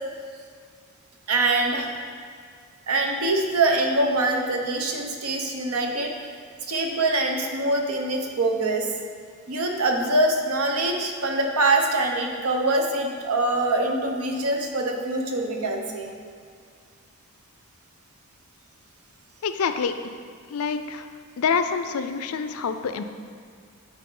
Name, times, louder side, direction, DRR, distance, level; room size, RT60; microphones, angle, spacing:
voice 1, 1.3-1.9 2.9-6.1 6.7-8.9 9.5-16.1, right 2 dB, 80° right, 2 dB, 0.9 m, -24 dB
voice 2, 19.4-19.9 20.5-21.1 21.4-23.0, left 6 dB, 75° left, 9 dB, 0.4 m, -26 dB
10.5 x 4.4 x 3.8 m, 2.1 s
head